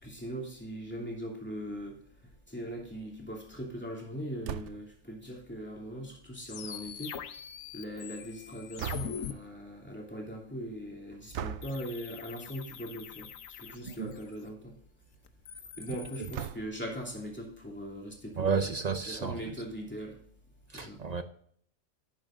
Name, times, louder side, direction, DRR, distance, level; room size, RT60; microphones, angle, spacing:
voice 1, 0.0-2.0 2.5-7.2 7.7-13.3 13.6-14.7 15.8-18.8 19.1-20.2 20.7-21.0, equal, 10° left, 2.8 m, -40 dB
sound 1, 4.4-5.0 8.8-9.4 11.3-11.8 13.0-13.3 13.7-13.8 14.0-14.1 16.3-16.9, right 10 dB, 70° right, 0.9 m, -39 dB
sound 2, 6.5-9.3 11.6-14.4 15.3-16.5, left 8 dB, 85° left, 1.2 m, -43 dB
voice 2, 18.4-19.3 20.7-21.2, right 5 dB, 45° right, 0.5 m, -31 dB
12.0 x 8.8 x 2.5 m
omnidirectional pair, 1.3 m